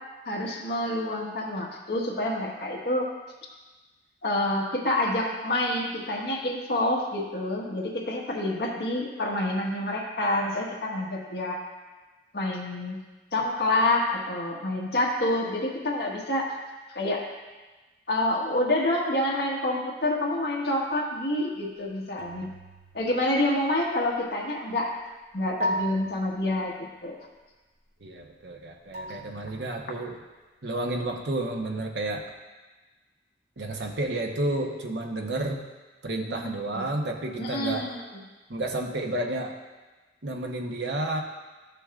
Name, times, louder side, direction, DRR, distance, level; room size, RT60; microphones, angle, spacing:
voice 1, 0.3-3.1 4.2-11.6 12.3-13.0 13.3-16.5 16.9-17.2 18.1-22.5 22.9-24.9 25.3-27.2 29.1-29.2 36.3-36.4 36.7-36.8 37.4-38.0, left 1 dB, 65° left, -2 dB, 1.5 m, -27 dB
sound 1, 22.2-23.8 25.6-27.0 28.9-30.2, right 1 dB, 40° right, 1.2 m, -36 dB
voice 2, 28.0-30.2 30.6-32.2 33.6-35.6 36.0-37.9 38.5-39.6 40.2-41.2, right 2 dB, 75° right, 2 dB, 1.0 m, -31 dB
13.0 x 6.8 x 2.5 m, 1.2 s
head